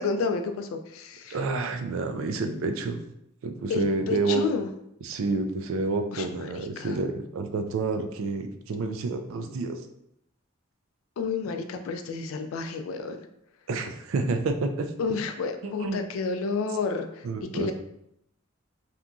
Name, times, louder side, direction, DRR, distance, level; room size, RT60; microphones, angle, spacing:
voice 1, 0.0-1.4 3.7-4.7 6.1-7.0 11.2-13.3 15.0-17.3 17.5-17.7, left 4 dB, 75° left, 7 dB, 0.3 m, -30 dB
voice 2, 1.3-3.0 3.4-4.4 5.0-9.8 13.7-14.9 15.6-16.0 17.2-17.7, right 3 dB, 70° right, 7 dB, 0.3 m, -29 dB
2.8 x 2.5 x 2.2 m, 0.76 s
head